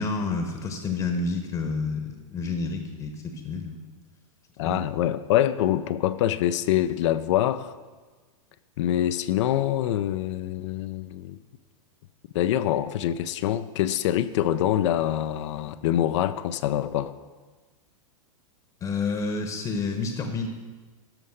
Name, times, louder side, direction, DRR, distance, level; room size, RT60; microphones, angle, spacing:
voice 1, 0.0-3.8 4.6-4.8 18.8-20.5, left 4 dB, 25° left, 5 dB, 1.0 m, -29 dB
voice 2, 4.6-7.7 8.8-11.4 12.3-17.1, left 12 dB, 55° left, 12 dB, 0.5 m, -25 dB
13.0 x 5.4 x 6.5 m, 1.3 s
hypercardioid pair, 140°, 18 cm